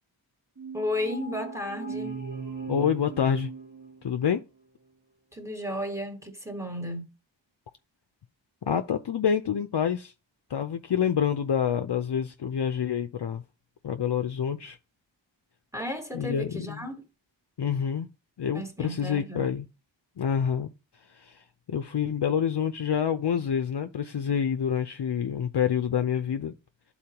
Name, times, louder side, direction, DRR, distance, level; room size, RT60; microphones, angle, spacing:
sound 1, 0.6-4.3, right 4 dB, 40° right, 1.4 m, -38 dB
voice 1, 0.7-2.2 5.3-7.1 15.7-17.0 18.5-19.5, left 1 dB, 5° right, 1.4 m, -34 dB
voice 2, 2.7-3.5 4.0-4.4 8.6-10.1 10.5-13.4 13.8-14.8 16.1-16.8 17.6-18.1 18.4-19.7 20.2-20.7 21.1-26.5, left 8 dB, 60° left, 0.6 m, -27 dB
11.5 x 4.2 x 2.9 m
wide cardioid pair, 55°, 47 cm